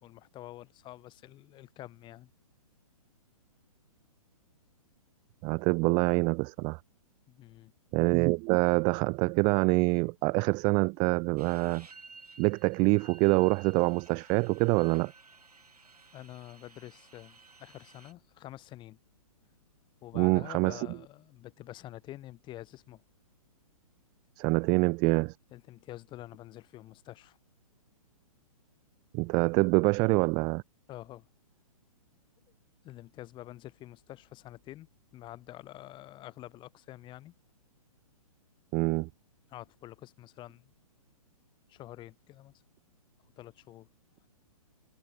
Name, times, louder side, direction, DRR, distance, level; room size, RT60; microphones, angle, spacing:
voice 1, 0.0-2.3 7.3-7.7 16.1-19.0 20.0-23.0 25.5-27.4 30.9-31.3 32.8-34.9 35.1-37.3 39.5-40.7 41.7-42.5 43.4-43.9, left 15 dB, 25° left, 4.8 m, -47 dB
voice 2, 5.4-6.8 7.9-11.9 12.4-15.1 20.2-20.9 24.4-25.3 29.1-30.6 38.7-39.1, right 30 dB, 25° right, 0.5 m, -25 dB
sound 1, 11.4-18.1, right 4 dB, 90° right, 6.6 m, -55 dB
hypercardioid pair, 130°, 19 cm